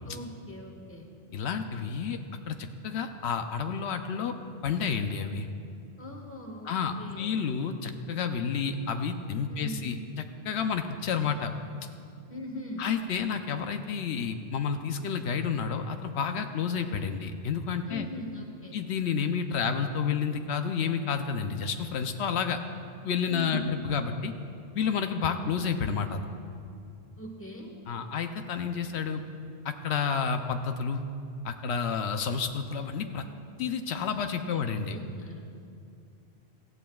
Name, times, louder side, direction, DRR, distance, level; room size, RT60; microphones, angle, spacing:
voice 1, 0.1-1.1 6.0-6.7 7.0-7.3 9.5-9.9 12.3-12.9 17.9-18.8 23.3-23.7 27.2-27.7 34.5-34.6 34.9-35.5, left 1 dB, 10° left, 1 dB, 1.3 m, -40 dB
voice 2, 1.3-2.2 2.5-4.3 4.6-5.5 6.7-10.0 10.4-11.5 12.8-18.1 18.7-22.6 23.0-24.3 24.7-26.2 27.9-29.2 29.6-31.0 31.4-33.3 33.6-35.0, left 6 dB, 80° left, 7 dB, 0.9 m, -30 dB
18.0 x 15.0 x 2.3 m, 2.4 s
omnidirectional pair, 1.1 m